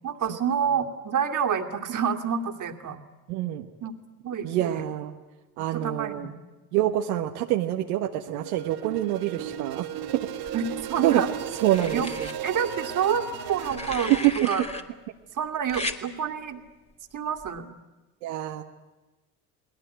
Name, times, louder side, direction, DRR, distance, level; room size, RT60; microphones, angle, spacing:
voice 1, 0.0-3.0 3.8-3.9 4.2-4.9 5.7-6.3 6.7-6.9 10.5-10.6 10.9-11.3 11.9-12.1 12.4-14.6 15.4-16.6 17.1-17.7, right 7 dB, 45° right, 4 dB, 2.5 m, -28 dB
voice 2, 3.3-3.6 4.4-5.1 5.6-6.3 6.7-9.9 11.0-11.2 11.6-12.3 14.2-14.3 18.2-18.6, right 13 dB, 80° right, 3 dB, 1.4 m, -26 dB
sound 1, 8.3-14.3, right 9 dB, 60° right, 2.9 m, -35 dB
sound 2, 10.4-11.1 11.7-12.3 13.5-14.8 15.7-16.0 17.4-17.6, left 2 dB, 15° left, 2.4 m, -36 dB
30.0 x 19.5 x 9.2 m, 1.1 s
hypercardioid pair, 75°, 44 cm